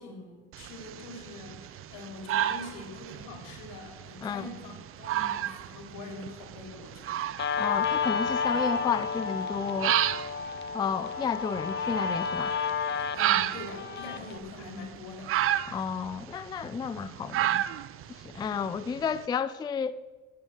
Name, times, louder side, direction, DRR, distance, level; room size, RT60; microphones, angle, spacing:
voice 1, 0.0-7.3 13.0-15.4, left 3 dB, 85° left, 4.0 m, -44 dB
sound 1, 0.5-19.2, right 12 dB, 45° right, 0.5 m, -33 dB
Guitar, 7.4-14.4, left 5 dB, 35° left, 1.0 m, -31 dB
voice 2, 7.6-10.0 10.7-12.5 15.7-17.6 18.1-20.0, left 6 dB, 15° left, 0.3 m, -32 dB
14.5 x 6.5 x 8.2 m
cardioid pair, 130°, 31 cm